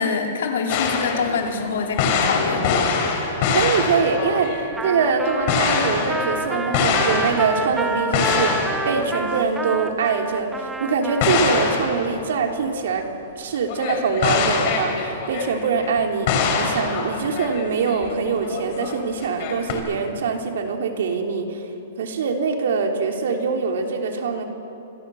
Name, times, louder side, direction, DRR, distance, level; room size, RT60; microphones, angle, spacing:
voice 1, 0.0-2.7, left 5 dB, 65° left, 1 dB, 4.5 m, -25 dB
sound 1, 0.7-7.8 8.1-9.1 9.4-9.5 10.1-10.2 11.2-12.7 13.7-16.0 16.3-18.9 19.2-19.7, left 5 dB, 35° left, 4.4 m, -24 dB
Wind instrument woodwind instrument, 3.0-11.3, right 5 dB, 25° right, 7.1 m, -40 dB
voice 2, 3.5-13.1 13.3-16.3 16.6-21.6 22.0-24.4, right 5 dB, 65° right, 3 dB, 3.4 m, -23 dB
Trumpet, 4.8-11.9, right 2 dB, 5° right, 0.8 m, -30 dB
27.5 x 25.0 x 7.1 m, 2.9 s
hypercardioid pair, 175°, 0 cm